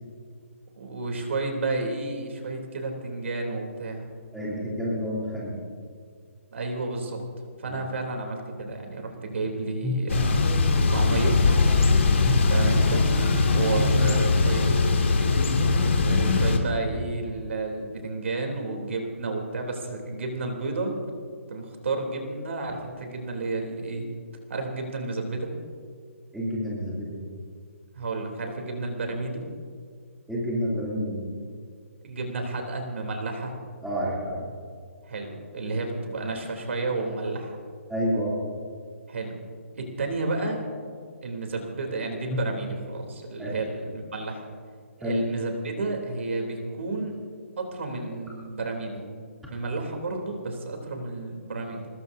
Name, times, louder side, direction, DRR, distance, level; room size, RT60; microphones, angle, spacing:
voice 1, 0.8-4.1 6.5-7.2 7.6-10.3 10.9-11.4 12.5-13.0 13.5-14.6 15.0-15.3 15.9-21.1 21.5-24.1 24.5-25.5 27.9-29.4 32.0-33.5 35.1-37.6 39.1-39.3 39.7-40.6 41.2-44.4 45.0-47.2 47.6-49.0 49.5-51.9, right 3 dB, 60° right, 2 dB, 3.3 m, -31 dB
voice 2, 4.3-5.6 7.7-7.8 9.2-9.3 9.8-9.9 12.2-12.3 26.3-27.3 30.3-31.2 33.8-34.5 37.9-38.4 42.3-42.4 43.4-43.6 45.0-45.2, equal, ahead, -8 dB, 2.8 m, -29 dB
Thunder / Bicycle, 10.1-16.6, left 3 dB, 60° left, 2.4 m, -21 dB
24.5 x 21.0 x 2.7 m, 2.1 s
hypercardioid pair, 175°, 8 cm